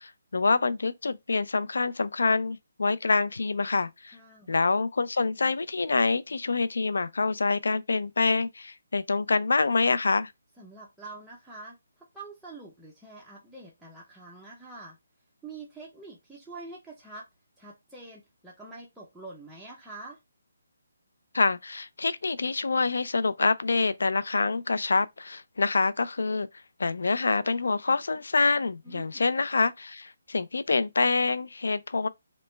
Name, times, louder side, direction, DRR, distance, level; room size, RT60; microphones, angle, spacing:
voice 1, 0.0-4.2 4.5-10.3 21.3-26.5 26.8-32.1, left 3 dB, 75° left, 0.3 m, -26 dB
voice 2, 4.1-4.5 10.6-15.0 15.4-17.3 17.6-20.2 28.8-29.3, right 3 dB, ahead, 0.4 m, -45 dB
2.9 x 2.1 x 3.1 m
hypercardioid pair, 175°, 0 cm